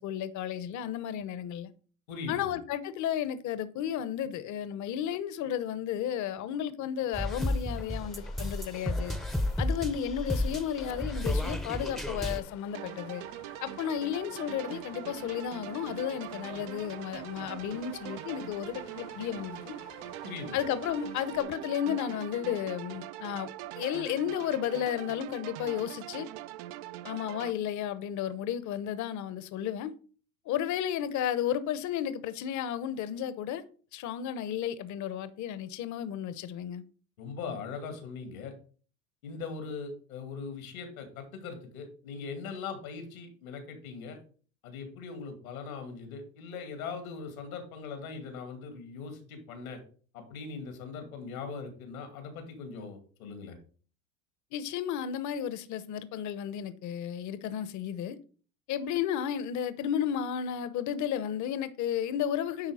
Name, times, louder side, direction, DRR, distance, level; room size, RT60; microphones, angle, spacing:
voice 1, 0.0-1.7 2.3-9.2 9.6-13.2 13.6-19.7 20.5-23.5 23.8-26.3 27.0-29.9 30.5-33.6 33.9-36.8 54.5-58.2 58.7-62.7, left 9 dB, 45° left, 0.8 m, -33 dB
voice 2, 2.1-2.5 20.2-20.7 37.2-38.5 39.2-44.2 44.6-49.8 50.1-53.6, left 5 dB, 90° left, 2.2 m, -40 dB
sound 1, 7.1-12.4, left 1 dB, ahead, 0.7 m, -32 dB
Water, 7.7-21.4, left 12 dB, 70° left, 1.1 m, -53 dB
sound 2, 12.7-27.5, right 14 dB, 65° right, 0.6 m, -42 dB
9.9 x 3.5 x 4.8 m
supercardioid pair, 100°, 41 cm